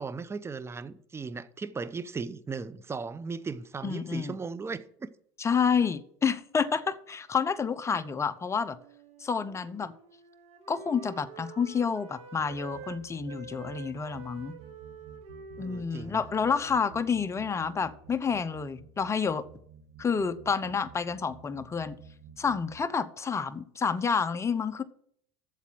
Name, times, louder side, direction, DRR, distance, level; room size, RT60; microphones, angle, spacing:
voice 1, 0.0-5.1 15.6-16.2, right 4 dB, 15° right, 0.7 m, -37 dB
voice 2, 3.8-4.3 5.4-8.8 9.2-9.9 10.7-14.5 15.6-19.5 20.0-22.0 22.4-24.8, left 6 dB, 20° left, 0.8 m, -29 dB
Wind instrument woodwind instrument, 8.1-13.0 13.2-18.6, right 5 dB, 45° right, 5.9 m, -49 dB
sound 1, 12.3-22.8, right 5 dB, 90° right, 1.7 m, -52 dB
8.3 x 7.3 x 7.5 m
supercardioid pair, 105°, 15 cm